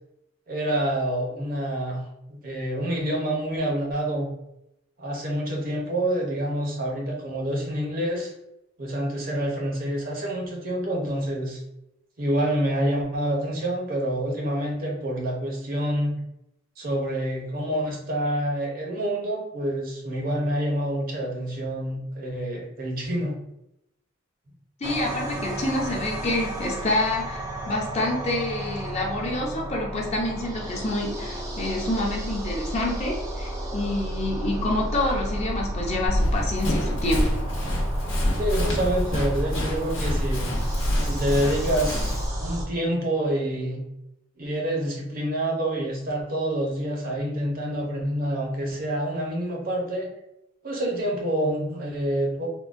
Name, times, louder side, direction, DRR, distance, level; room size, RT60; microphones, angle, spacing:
voice 1, 0.5-2.0 2.3-4.3 5.0-8.3 8.8-11.6 12.2-16.2 16.8-23.4 38.4-40.5 41.0-43.8 44.4-50.1 50.6-52.5, right 1 dB, 50° right, 0 dB, 0.7 m, -27 dB
voice 2, 24.8-37.4, left 1 dB, 35° left, -1 dB, 0.5 m, -27 dB
sound 1, 24.8-42.7, equal, 15° right, 0.4 m, -32 dB
Run, 36.1-42.3, equal, 85° left, 0.8 m, -27 dB
3.6 x 2.2 x 2.4 m, 0.85 s
head